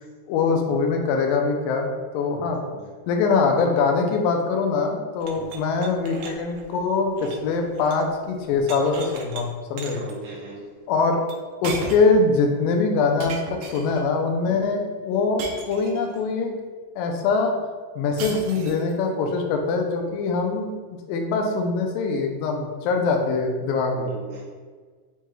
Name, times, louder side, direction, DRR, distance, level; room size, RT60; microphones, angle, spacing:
voice 1, 0.3-2.6 3.1-10.0 10.9-11.2 11.6-16.5 17.0-17.6 18.0-20.7 21.1-24.1, left 4 dB, 85° left, 3 dB, 2.3 m, -23 dB
voice 2, 2.3-2.9 5.3-5.5 9.9-10.6 14.4-14.7 23.9-24.4, right 1 dB, 75° right, -7 dB, 1.1 m, -39 dB
sound 1, 5.2-8.1 8.4-9.4 9.8-10.2 11.3-11.4 11.6-12.2 13.2-14.1 15.4-16.2 18.2-18.9, right 4 dB, 90° right, 1.6 m, -37 dB
5.9 x 2.2 x 3.1 m, 1.5 s
omnidirectional pair, 3.9 m